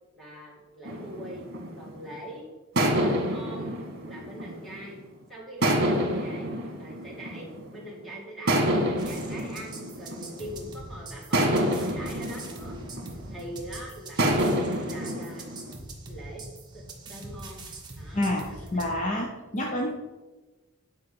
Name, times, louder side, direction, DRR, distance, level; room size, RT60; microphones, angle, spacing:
voice 1, 0.1-1.5 1.8-2.5 3.0-3.8 4.1-5.0 5.3-6.5 6.8-12.8 13.3-14.2 14.6-15.5 16.1-16.4 16.7-16.8 17.1-17.6 18.0-19.3, equal, ahead, -3 dB, 2.5 m, -42 dB
sound 1, 0.9-2.2 2.8-5.0 5.6-7.8 8.5-10.7 11.3-13.6 14.2-15.8, right 1 dB, 50° right, 1.6 m, -28 dB
sound 2, 9.0-18.9, right 2 dB, 20° right, 1.6 m, -43 dB
voice 2, 18.1-19.9, left 1 dB, 35° left, 1 dB, 0.8 m, -28 dB
10.0 x 4.6 x 7.0 m, 1.2 s
head